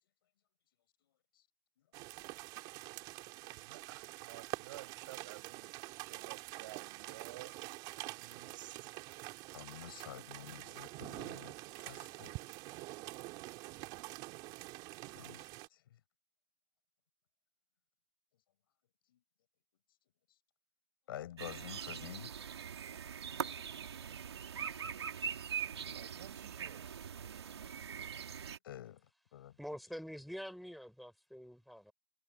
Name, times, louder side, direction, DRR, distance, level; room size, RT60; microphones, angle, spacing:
sound 1, 1.9-15.7, right 21 dB, 30° right, 3.0 m, -46 dB
voice 1, 3.5-5.7 6.0-7.5 8.2-8.9 9.8-10.1 25.9-27.0, right 16 dB, 50° right, 7.7 m, -53 dB
voice 2, 9.5-12.3 15.1-15.8 21.1-22.3 28.6-29.0 29.3-29.6, left 12 dB, 60° left, 5.3 m, -49 dB
sound 2, 21.4-28.6, right 7 dB, 90° right, 2.4 m, -42 dB
voice 3, 29.6-31.9, equal, ahead, 5.8 m, -46 dB
hypercardioid pair, 150°, 13 cm